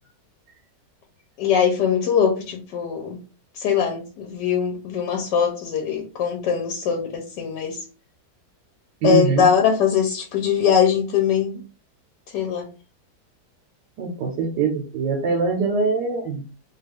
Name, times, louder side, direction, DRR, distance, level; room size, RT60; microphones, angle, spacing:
voice 1, 1.4-3.2 3.5-7.8 9.0-11.6 12.3-12.7, left 7 dB, 90° left, 1.2 m, -21 dB
voice 2, 9.0-9.5 14.0-16.4, right 4 dB, 90° right, 1.3 m, -23 dB
3.0 x 2.3 x 3.3 m
omnidirectional pair, 1.8 m